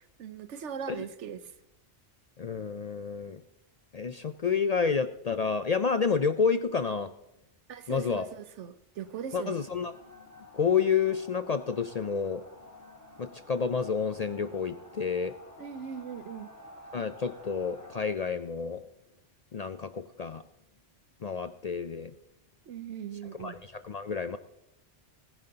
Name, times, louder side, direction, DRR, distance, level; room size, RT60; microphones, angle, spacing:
voice 1, 0.2-1.4 7.7-9.6 15.6-16.5 22.7-23.6, right 8 dB, 85° right, 12 dB, 1.1 m, -39 dB
voice 2, 2.4-3.4 3.9-7.1 7.9-8.3 9.3-9.9 10.5-12.4 13.2-15.3 16.9-18.8 19.5-20.4 21.2-22.1 23.4-24.4, left 6 dB, 55° left, 10 dB, 0.4 m, -29 dB
sound 1, 9.0-18.1, left 1 dB, 15° left, 1.9 m, -51 dB
19.5 x 10.5 x 2.8 m, 0.86 s
omnidirectional pair, 1.2 m